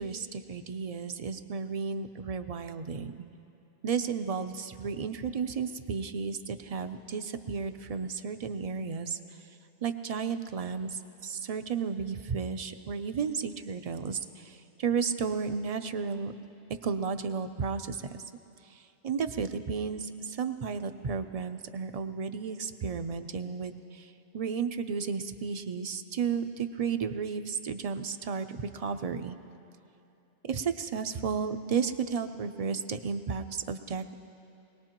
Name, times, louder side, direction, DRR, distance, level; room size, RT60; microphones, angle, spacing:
voice 1, 0.0-3.1 3.8-9.2 9.8-16.3 16.8-18.2 18.7-29.4 30.4-34.1, right 6 dB, 45° right, 9 dB, 0.5 m, -33 dB
23.0 x 18.5 x 3.0 m, 2.7 s
omnidirectional pair, 1.1 m